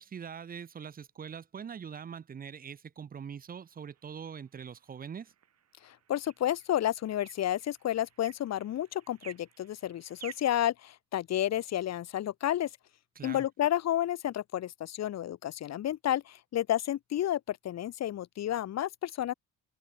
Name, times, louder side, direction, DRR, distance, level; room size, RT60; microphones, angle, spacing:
voice 1, 0.0-5.3 13.2-13.5, right 7 dB, 25° right, 0.7 m, -43 dB
sound 1, 3.5-10.6, right 9 dB, 50° right, 5.0 m, -54 dB
voice 2, 5.8-12.7 13.2-19.3, left 12 dB, 50° left, 1.1 m, -31 dB
open air
cardioid pair, 130°, 34 cm